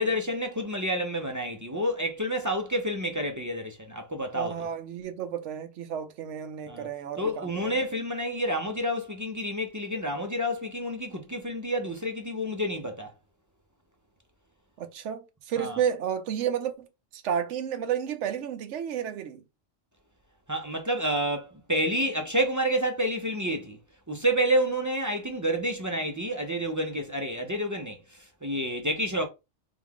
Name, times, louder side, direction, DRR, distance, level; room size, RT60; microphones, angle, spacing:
voice 1, 0.0-4.5 6.7-6.9 7.2-13.1 15.6-15.8 20.5-23.8 24.1-29.3, equal, 20° right, 0.5 m, -29 dB
voice 2, 4.3-7.7 14.8-19.4, right 8 dB, 65° right, 1.0 m, -32 dB
4.8 x 2.4 x 3.6 m
omnidirectional pair, 1.4 m